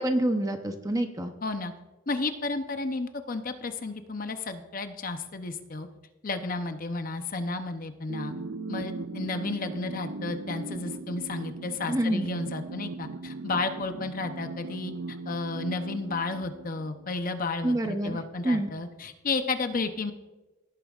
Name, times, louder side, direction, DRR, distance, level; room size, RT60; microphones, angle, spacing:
voice 1, 0.0-1.3 11.9-12.3 17.6-18.2 18.4-18.7, right 1 dB, 15° right, 6 dB, 0.7 m, -27 dB
voice 2, 1.4-1.7 2.1-5.9 6.2-8.3 8.7-14.9 15.3-20.1, left 3 dB, 40° left, 8 dB, 0.7 m, -32 dB
sound 1, 8.1-17.1, right 3 dB, 55° right, 0.4 m, -38 dB
17.0 x 8.8 x 2.4 m, 1.1 s
head